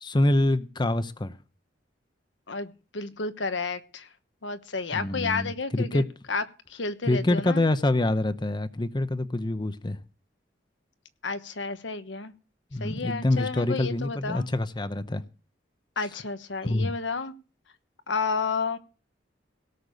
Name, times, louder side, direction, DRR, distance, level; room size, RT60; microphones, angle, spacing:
voice 1, 0.0-1.3 4.9-6.0 7.1-10.0 12.7-15.2 16.6-16.9, left 1 dB, 25° left, 0.7 m, -26 dB
voice 2, 2.5-4.1 4.4-6.4 6.7-7.6 11.2-12.3 12.8-14.5 16.0-17.3 18.1-18.8, left 4 dB, 85° left, 1.3 m, -31 dB
17.5 x 6.7 x 6.6 m
head